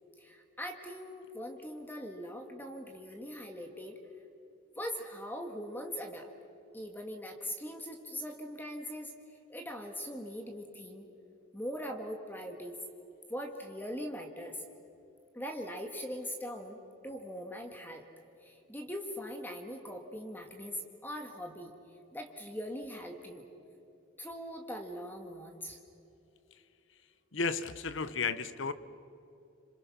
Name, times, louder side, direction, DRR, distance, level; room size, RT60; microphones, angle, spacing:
voice 1, 0.2-4.0 4.7-6.3 6.7-9.1 9.5-11.1 11.5-12.8 13.3-14.6 15.3-16.8 17.0-18.0 18.4-21.7 22.1-23.5 24.2-25.8, equal, 10° left, 4 dB, 1.7 m, -41 dB
voice 2, 27.3-28.7, left 4 dB, 65° left, 14 dB, 0.9 m, -33 dB
27.5 x 27.0 x 6.0 m, 2.8 s
head